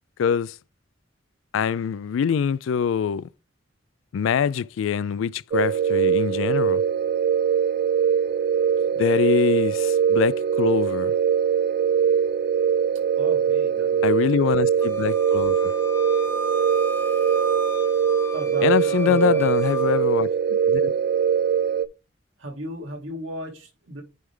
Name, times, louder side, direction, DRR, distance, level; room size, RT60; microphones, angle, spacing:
voice 1, 0.2-0.6 1.5-3.3 4.1-6.8 9.0-11.1 14.0-15.7 18.6-20.9, left 7 dB, 85° left, 0.3 m, -24 dB
sound 1, 5.5-21.9, right 7 dB, 55° right, 0.4 m, -22 dB
voice 2, 13.1-14.2 18.3-19.5 22.4-24.0, right 1 dB, 90° right, 2.5 m, -36 dB
Wind instrument woodwind instrument, 14.8-20.0, right 1 dB, 15° left, 0.7 m, -34 dB
9.3 x 3.4 x 3.6 m
head